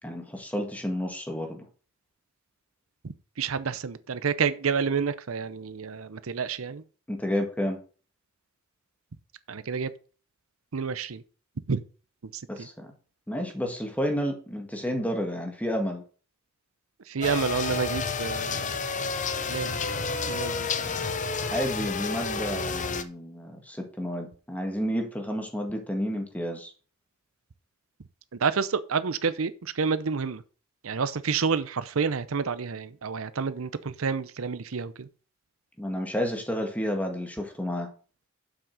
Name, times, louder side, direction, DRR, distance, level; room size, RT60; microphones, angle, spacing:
voice 1, 0.0-1.7 7.1-7.8 12.5-12.9 13.3-16.0 20.8-21.1 21.5-26.7 35.8-37.9, equal, 5° left, 1.8 m, -31 dB
voice 2, 3.0-6.8 9.5-9.9 10.7-11.2 11.7-11.8 12.2-12.7 17.1-18.9 19.5-19.8 20.3-20.7 28.4-30.4 30.8-35.1, right 5 dB, 80° right, 0.7 m, -29 dB
sound 1, 17.2-23.0, left 4 dB, 35° left, 0.8 m, -30 dB
7.6 x 6.1 x 6.5 m
head